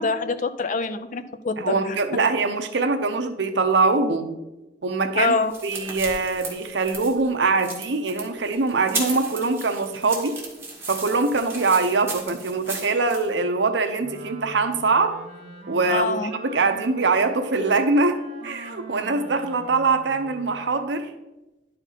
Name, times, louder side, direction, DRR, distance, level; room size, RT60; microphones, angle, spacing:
voice 1, 0.0-1.9 5.1-5.5 15.9-16.3, left 4 dB, 45° left, 11 dB, 0.5 m, -25 dB
voice 2, 1.6-4.3 4.8-5.3 5.6-10.4 10.9-15.1 15.7-18.2 18.4-21.1, right 3 dB, 80° right, 7 dB, 0.8 m, -23 dB
sound 1, 5.2-13.3, right 3 dB, 15° right, 1.7 m, -35 dB
Wind instrument woodwind instrument, 14.0-20.7, right 2 dB, 35° right, 1.4 m, -42 dB
11.0 x 4.4 x 4.0 m, 1.0 s
head